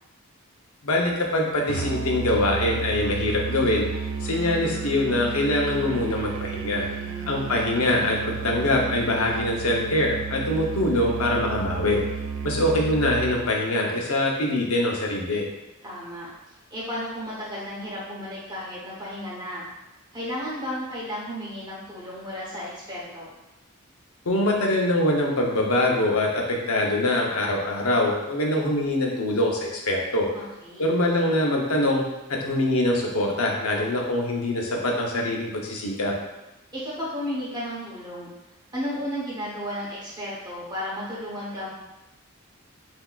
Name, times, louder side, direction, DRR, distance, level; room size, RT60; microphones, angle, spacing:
voice 1, 0.8-3.9 4.2-6.9 7.3-12.0 12.4-15.4 24.3-29.6 29.9-30.3 30.8-32.0 32.3-36.1, left 1 dB, 85° left, -1 dB, 0.8 m, -23 dB
Musical instrument, 1.7-13.5, right 6 dB, 65° right, 0.3 m, -32 dB
voice 2, 6.9-7.6 15.8-16.3 16.7-19.6 20.1-23.3 30.3-30.9 36.7-38.3 38.7-41.7, equal, 20° right, -8 dB, 1.0 m, -33 dB
5.7 x 2.8 x 2.4 m, 0.97 s
head